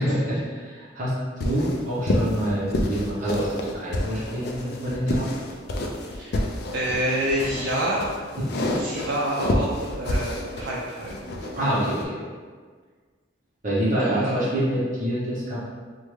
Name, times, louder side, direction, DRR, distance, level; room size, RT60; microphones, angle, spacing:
voice 1, 0.0-5.3 8.5-8.8 11.6-12.2 13.6-15.6, equal, 40° right, -8 dB, 0.8 m, -26 dB
sound 1, 1.4-12.0, left 1 dB, 55° left, 0.3 m, -29 dB
voice 2, 6.0-8.2 8.8-11.1 11.4-11.6 14.0-14.4, right 1 dB, 60° right, -4 dB, 0.4 m, -28 dB
3.4 x 2.1 x 3.1 m, 1.6 s
head